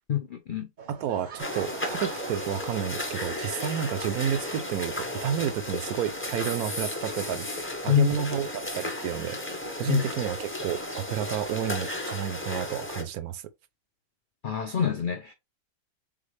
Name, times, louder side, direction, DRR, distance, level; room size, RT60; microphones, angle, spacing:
voice 1, 0.1-0.7 7.9-8.2 9.9-10.0 14.4-15.3, left 10 dB, 75° left, 0.4 m, -26 dB
Laughter / Crowd, 0.8-3.6, right 5 dB, 40° right, 0.7 m, -44 dB
voice 2, 0.9-7.5 7.8-9.4 9.8-13.4, right 9 dB, 75° right, 1.0 m, -30 dB
sound 1, 1.4-13.0, left 1 dB, 10° left, 0.7 m, -34 dB
3.9 x 3.7 x 3.3 m
omnidirectional pair, 1.7 m